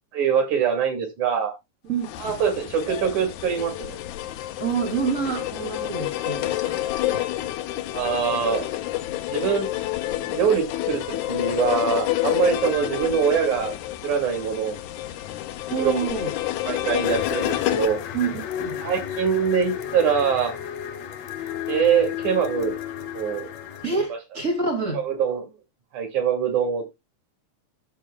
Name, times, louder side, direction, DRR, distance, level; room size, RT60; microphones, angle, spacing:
voice 1, 0.1-1.5 2.2-4.0 7.9-8.6 9.3-9.7 10.1-13.7 14.0-14.8 15.8-16.1 16.7-18.0 18.8-20.6 21.7-22.7 23.1-23.5 25.0-25.5 25.9-26.9, right 7 dB, 85° right, 3.7 m, -23 dB
sound 1, 2.0-17.9, left 15 dB, 90° left, 2.1 m, -29 dB
voice 2, 4.6-6.8 7.1-7.2 15.7-16.4 18.1-18.8 23.8-25.0, right 5 dB, 25° right, 2.4 m, -27 dB
sound 2, 17.0-23.9, left 9 dB, 70° left, 2.2 m, -33 dB
14.5 x 6.3 x 2.2 m
omnidirectional pair, 3.3 m